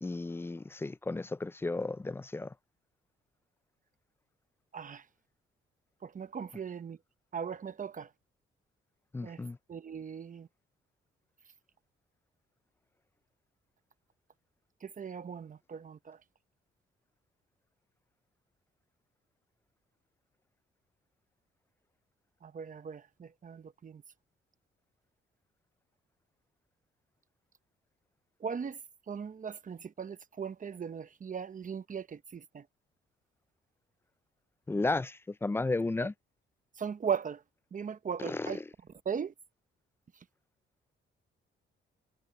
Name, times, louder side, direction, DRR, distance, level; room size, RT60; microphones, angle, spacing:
voice 1, 0.0-2.5 9.1-9.6 34.7-36.1 38.2-38.6, left 2 dB, 10° left, 0.3 m, -33 dB
voice 2, 4.7-5.0 6.0-7.0 7.3-8.1 9.2-9.4 9.7-10.5 14.8-16.2 22.4-24.0 28.4-28.8 29.1-32.6 36.8-37.4 37.7-38.6 39.0-39.3, right 7 dB, 40° right, 0.9 m, -38 dB
cardioid pair, 95°, 21 cm